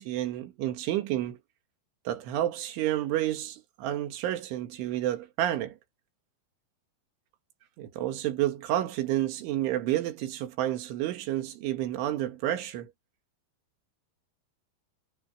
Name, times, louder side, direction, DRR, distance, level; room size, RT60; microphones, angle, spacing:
voice 1, 0.0-1.4 2.1-5.8 7.8-12.9, right 13 dB, 75° right, 4.3 m, -30 dB
omnidirectional pair, 5.6 m